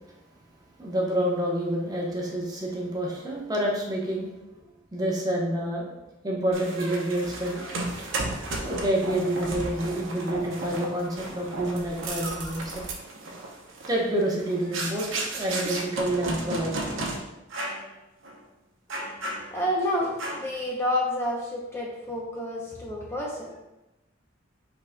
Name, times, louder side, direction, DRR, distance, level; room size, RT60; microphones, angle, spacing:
voice 1, 0.8-4.3 4.9-5.9 6.2-7.7 8.6-12.9 13.9-15.1 15.3-16.7, right 1 dB, 20° right, -2 dB, 0.8 m, -28 dB
sound 1, 6.5-17.2 17.5-17.9 18.2-18.4 18.9-19.8 20.2-20.6, right 2 dB, 70° right, 0.7 m, -34 dB
voice 2, 19.0-23.5, left 1 dB, 15° left, -3 dB, 0.6 m, -30 dB
5.8 x 3.9 x 2.2 m, 0.95 s
head